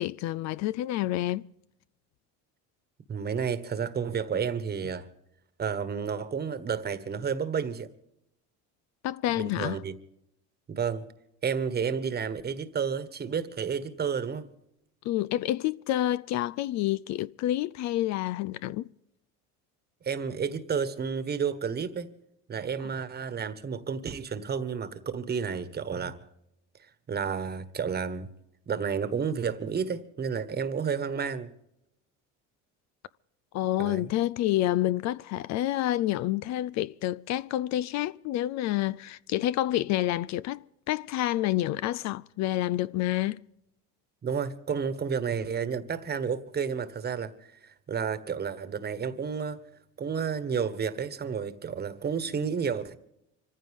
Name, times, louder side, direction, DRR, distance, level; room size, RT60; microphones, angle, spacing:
voice 1, 0.0-1.4 9.0-9.8 15.0-18.9 33.5-43.4, left 14 dB, 55° left, 0.5 m, -28 dB
voice 2, 3.1-5.1 5.6-7.9 9.3-9.9 10.7-11.1 11.4-14.5 20.0-22.1 22.5-26.2 26.8-28.3 28.7-31.5 33.8-34.1 44.2-49.6 50.0-52.9, right 6 dB, 30° right, 1.4 m, -31 dB
25.5 x 15.0 x 3.6 m
cardioid pair, 115°, 33 cm